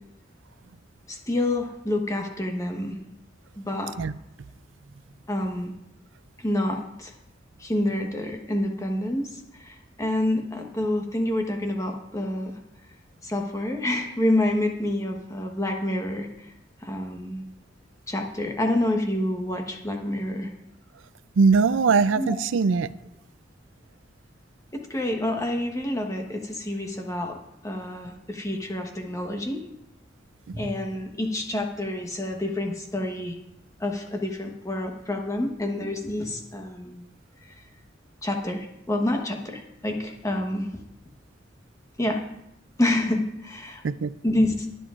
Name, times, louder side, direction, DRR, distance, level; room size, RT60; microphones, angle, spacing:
voice 1, 1.1-3.0 3.6-3.9 5.3-5.7 6.4-7.1 7.6-12.5 13.2-16.5 16.8-17.4 18.1-20.5 22.1-22.4 24.7-29.6 30.5-33.4 33.8-37.0 37.4-37.5 38.2-40.7 42.0-42.2 42.8-43.8 44.2-44.7, left 1 dB, 15° left, 3 dB, 1.2 m, -28 dB
voice 2, 21.4-22.9 30.5-30.6 43.8-44.1, right 5 dB, 85° right, 15 dB, 0.4 m, -21 dB
22.5 x 7.8 x 2.5 m, 0.83 s
head